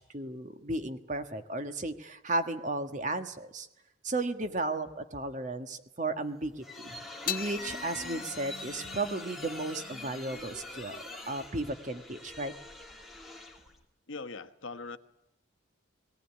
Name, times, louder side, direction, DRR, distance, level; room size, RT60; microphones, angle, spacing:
voice 1, 0.0-3.7 4.0-7.0 7.3-12.5, right 2 dB, 40° right, 8 dB, 1.6 m, -34 dB
sound 1, 6.2-13.8, left 2 dB, ahead, 2.6 m, -45 dB
sound 2, 7.2-13.8, left 7 dB, 45° left, 1.2 m, -43 dB
voice 2, 14.1-15.0, left 3 dB, 80° left, 9 dB, 1.2 m, -41 dB
19.0 x 18.5 x 9.9 m, 0.85 s
head